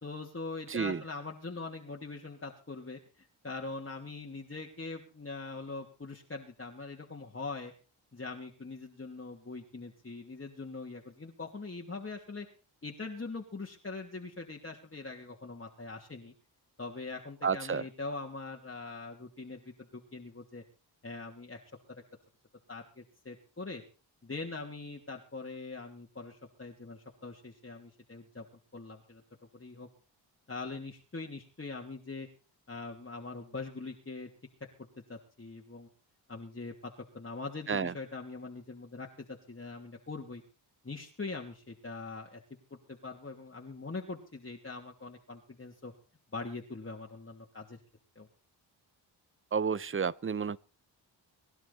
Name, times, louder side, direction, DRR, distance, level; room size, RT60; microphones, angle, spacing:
voice 1, 0.0-7.7 8.1-12.5 12.8-16.3 16.8-20.6 21.0-21.6 22.7-23.8 24.2-28.4 28.7-29.2 29.5-29.9 30.5-32.3 32.7-34.3 35.1-35.9 36.3-40.4 40.8-42.4 42.7-45.9 46.3-47.8 48.1-48.3, left 3 dB, 30° left, 3.0 m, -42 dB
voice 2, 0.7-1.0 17.4-17.8 37.7-37.9 49.5-50.6, right 6 dB, 30° right, 0.8 m, -31 dB
23.5 x 11.5 x 4.3 m
cardioid pair, 60°, 45 cm